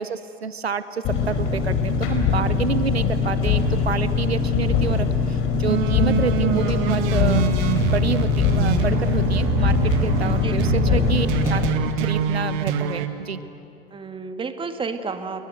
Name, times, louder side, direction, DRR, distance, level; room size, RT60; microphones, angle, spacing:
voice 1, 0.0-7.5 7.8-13.4, right 6 dB, 85° right, 15 dB, 0.9 m, -28 dB
Engine, 1.0-11.7, left 6 dB, 45° left, 4.5 m, -22 dB
sound 1, 5.7-13.1, right 8 dB, 50° right, 2.0 m, -25 dB
voice 2, 13.9-15.5, right 4 dB, 15° right, 8 dB, 2.0 m, -31 dB
29.5 x 22.5 x 7.9 m, 2.7 s
figure-of-eight pair, 90°, 31 cm